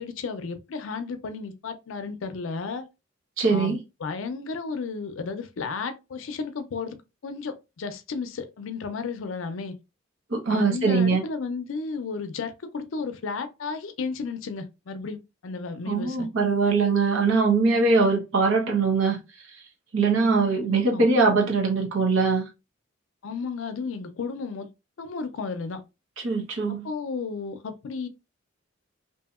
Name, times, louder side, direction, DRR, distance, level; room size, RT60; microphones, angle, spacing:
voice 1, 0.0-2.9 3.5-7.0 7.2-9.7 10.5-16.3 20.6-21.1 23.2-24.7 25.0-25.8 26.8-28.1, left 4 dB, 85° left, 0.5 m, -33 dB
voice 2, 3.4-3.8 10.3-11.2 15.9-19.2 19.9-22.4 26.2-26.9, right 4 dB, 80° right, 0.8 m, -22 dB
2.7 x 2.6 x 2.3 m
head